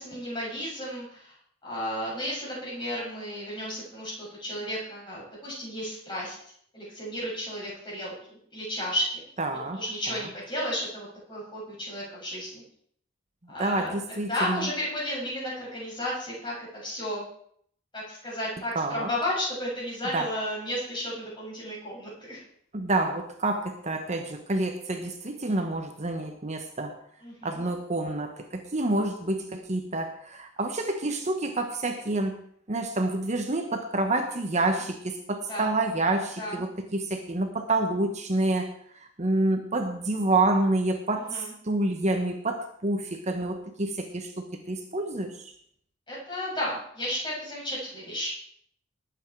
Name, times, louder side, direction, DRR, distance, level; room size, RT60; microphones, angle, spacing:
voice 1, 0.0-1.4 1.6-6.4 6.7-9.2 9.8-12.6 13.5-13.9 14.3-17.2 17.9-22.4 27.2-27.7 35.5-35.7 36.4-36.6 41.3-41.5 46.1-48.3, equal, 25° left, -5 dB, 7.7 m, -33 dB
voice 2, 9.4-9.8 10.1-10.2 13.6-14.7 18.7-19.1 20.1-20.3 22.7-27.0 27.4-32.4 32.7-38.7 39.0-45.5, right 2 dB, 35° right, 5 dB, 1.2 m, -28 dB
19.5 x 8.2 x 4.7 m, 0.64 s
head